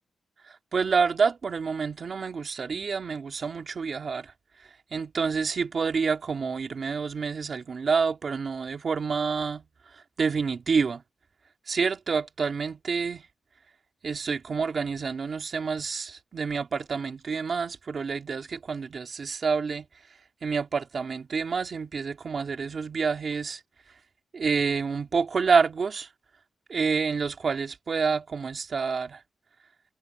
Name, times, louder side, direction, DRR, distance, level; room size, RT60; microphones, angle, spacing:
voice 1, 0.5-4.3 4.9-9.6 9.9-11.0 11.7-13.2 14.0-19.9 20.4-23.6 24.3-26.1 26.7-29.2, right 5 dB, 45° right, 2.3 m, -28 dB
wide cardioid pair, 170°, 0 cm